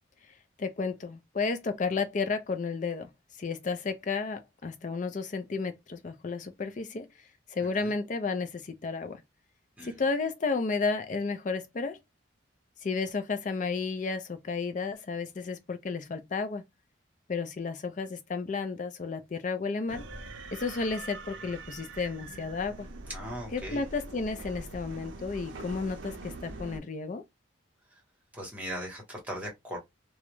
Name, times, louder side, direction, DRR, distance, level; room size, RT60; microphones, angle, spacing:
voice 1, 0.6-3.1 3.4-7.1 7.5-9.2 9.8-12.0 12.8-16.6 17.3-20.0 20.5-22.9 23.5-27.2, left 4 dB, 40° left, 0.4 m, -32 dB
sound 1, 19.9-26.8, right 2 dB, 75° right, 0.5 m, -43 dB
voice 2, 23.1-23.8 28.3-29.8, equal, 10° right, 1.0 m, -38 dB
2.3 x 2.0 x 2.9 m
head